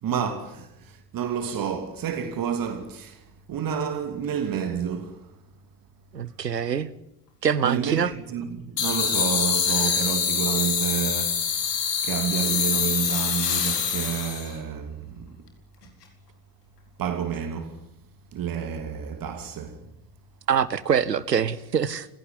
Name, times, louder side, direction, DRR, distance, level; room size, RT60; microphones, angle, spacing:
voice 1, 0.0-5.3 7.6-11.7 12.0-15.5 17.0-17.8 18.3-19.9, right 8 dB, 45° right, 2.7 m, -30 dB
voice 2, 6.1-6.9 7.4-8.1 9.8-10.0 20.5-22.1, right 7 dB, 85° right, 1.2 m, -24 dB
sound 1, 8.8-14.5, left 7 dB, 75° left, 4.4 m, -25 dB
29.0 x 17.0 x 9.8 m
figure-of-eight pair, 60°, 48 cm